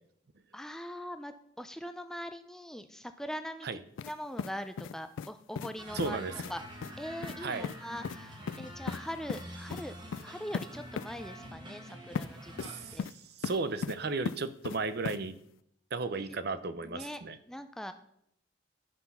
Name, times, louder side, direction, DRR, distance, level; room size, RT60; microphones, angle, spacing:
voice 1, 0.5-3.7 4.0-6.2 6.5-6.6 7.0-9.9 10.2-13.1 13.5-13.6 16.2-16.3 16.8-17.2 17.5-17.9, equal, 5° left, 9 dB, 0.4 m, -42 dB
sound 1, 4.0-4.1 4.4-5.3 5.6-5.7 6.0-6.1 6.4-6.5 6.8-6.9 7.2-7.4 7.6-7.8 8.0-8.2 8.5-9.0 9.3-9.4 9.7-9.8 10.1-10.2 10.5-10.7 11.0-11.1 12.2-12.3 12.6-13.1 13.4-14.0 14.3-14.8 15.1-15.2, left 6 dB, 80° left, 0.3 m, -36 dB
sound 2, 5.8-13.0, equal, 25° right, 1.5 m, -46 dB
voice 2, 5.9-6.3 7.4-7.7 12.6-13.1 13.4-15.4 15.9-17.4, right 3 dB, 55° right, 12 dB, 0.6 m, -34 dB
11.5 x 5.9 x 5.6 m, 0.74 s
head